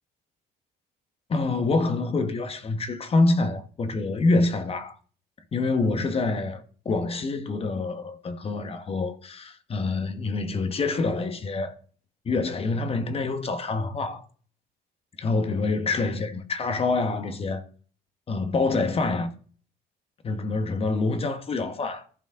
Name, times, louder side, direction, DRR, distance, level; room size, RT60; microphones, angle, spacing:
voice 1, 1.3-5.0 5.5-11.7 12.2-14.2 15.2-17.7 18.3-19.3 20.2-22.0, left 3 dB, 35° left, 1.2 m, -26 dB
15.0 x 5.2 x 3.7 m
cardioid pair, 110°, 17 cm